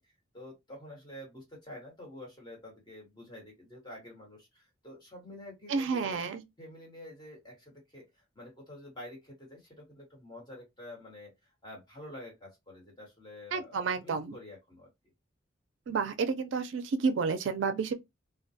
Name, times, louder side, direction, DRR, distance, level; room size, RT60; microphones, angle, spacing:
voice 1, 0.0-6.2 6.6-11.3 11.6-14.9, left 1 dB, 20° left, 1.2 m, -48 dB
voice 2, 5.7-6.4 13.5-14.4 15.9-17.9, right 5 dB, 70° right, 0.4 m, -30 dB
2.2 x 2.2 x 2.6 m
head